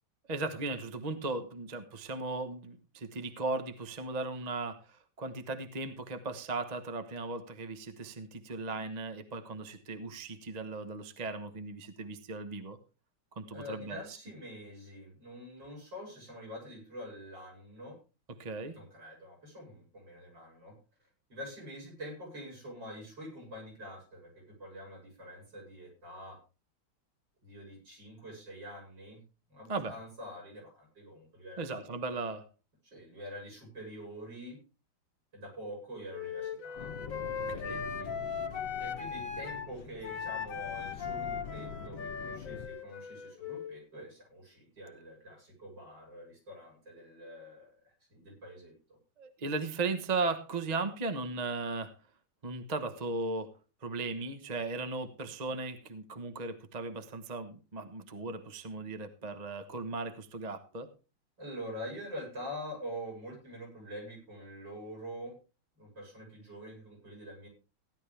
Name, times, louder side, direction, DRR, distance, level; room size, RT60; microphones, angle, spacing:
voice 1, 0.3-12.8 13.3-14.0 18.4-18.8 29.7-29.9 31.6-32.5 37.5-37.8 44.8-44.9 49.2-51.9 52.4-53.5 53.8-60.9, right 3 dB, 30° right, 9 dB, 0.8 m, -37 dB
voice 2, 13.5-18.0 18.7-26.4 27.4-29.2 29.5-31.7 32.8-34.6 35.3-36.9 37.5-38.1 38.8-49.0 61.4-65.3 65.7-67.5, equal, 60° right, -2 dB, 8.2 m, -46 dB
Wind instrument woodwind instrument, 36.1-39.7 40.0-43.8, left 6 dB, 45° left, 1.4 m, -38 dB
sound 1, 36.8-42.7, left 6 dB, 70° left, 1.6 m, -45 dB
16.5 x 11.5 x 3.4 m, 0.32 s
omnidirectional pair, 2.3 m